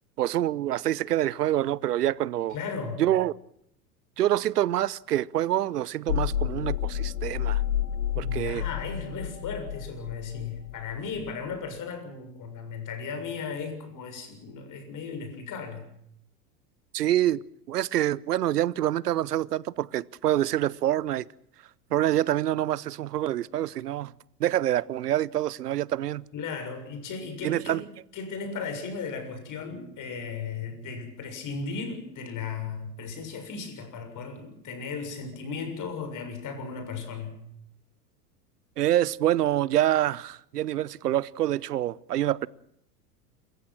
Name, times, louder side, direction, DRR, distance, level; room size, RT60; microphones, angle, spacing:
voice 1, 0.2-2.6 3.0-3.3 4.2-7.6 8.2-8.6 16.9-21.3 21.9-24.1 24.4-26.2 27.4-27.8 38.8-42.5, right 13 dB, 85° right, 0.8 m, -26 dB
voice 2, 2.5-3.0 8.1-15.9 26.3-27.8 28.1-37.4, left 5 dB, 40° left, 7.0 m, -36 dB
sound 1, 6.1-11.5, left 11 dB, 85° left, 1.0 m, -30 dB
28.0 x 15.5 x 7.6 m
hypercardioid pair, 85°, 46 cm